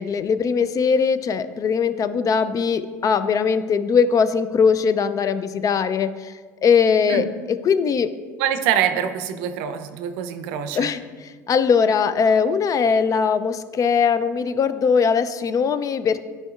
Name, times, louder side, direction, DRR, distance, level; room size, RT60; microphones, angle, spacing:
voice 1, 0.0-6.3 6.6-8.1 10.7-16.2, left 6 dB, 40° left, 12 dB, 0.4 m, -20 dB
voice 2, 8.4-10.9, right 9 dB, 75° right, 9 dB, 0.5 m, -24 dB
10.5 x 4.4 x 2.4 m, 1.5 s
hypercardioid pair, 70°, 9 cm